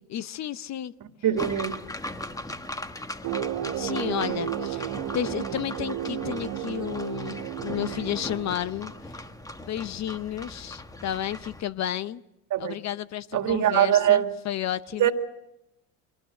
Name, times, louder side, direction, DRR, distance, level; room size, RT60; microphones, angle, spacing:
voice 1, 0.1-0.9 3.8-9.2 9.6-12.2 12.6-15.1, left 11 dB, 40° left, 0.8 m, -32 dB
voice 2, 1.2-1.8 12.5-12.8 13.3-14.3 15.0-15.1, right 11 dB, 45° right, 2.2 m, -22 dB
sound 1, 1.4-11.6, left 1 dB, 10° left, 1.4 m, -39 dB
sound 2, 3.2-9.0, right 11 dB, 70° right, 1.7 m, -33 dB
24.0 x 19.5 x 7.8 m
supercardioid pair, 100°, 42 cm